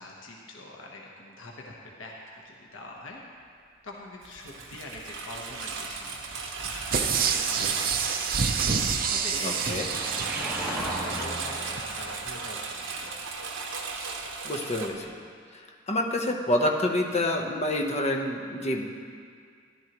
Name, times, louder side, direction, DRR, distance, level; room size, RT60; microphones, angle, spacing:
voice 1, 0.0-3.2 3.8-8.4 9.1-13.2, left 2 dB, 85° left, -1 dB, 1.1 m, -44 dB
Engine, 4.2-14.9, right 4 dB, 75° right, 1.0 m, -36 dB
sound 1, 6.9-11.4 11.8-11.9, right 6 dB, 50° right, 0.6 m, -28 dB
Car passing by / Engine, 7.4-14.3 14.6-14.9 15.1-15.2, equal, ahead, 1.7 m, -39 dB
voice 2, 9.4-9.9 14.4-15.2 15.5-18.9, left 1 dB, 35° left, 1 dB, 0.9 m, -28 dB
14.0 x 11.5 x 3.0 m, 2.2 s
head